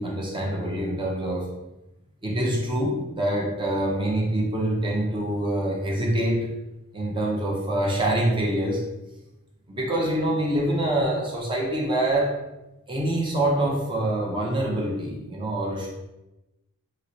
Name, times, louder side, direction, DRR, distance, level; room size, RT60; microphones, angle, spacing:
voice 1, 0.0-1.5 2.2-6.5 6.9-8.8 9.7-12.3 12.9-15.9, right 1 dB, 20° right, -2 dB, 0.6 m, -25 dB
3.1 x 2.9 x 2.7 m, 0.96 s
head